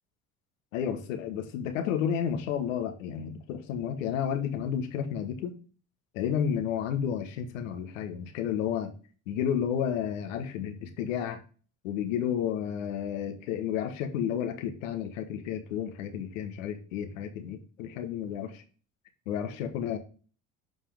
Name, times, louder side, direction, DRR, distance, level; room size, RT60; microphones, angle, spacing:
voice 1, 0.7-5.5 6.1-8.9 9.3-11.4 11.8-18.6 19.3-20.0, left 8 dB, 80° left, 7 dB, 1.3 m, -31 dB
7.9 x 5.6 x 3.5 m, 0.38 s
hypercardioid pair, 60°, 38 cm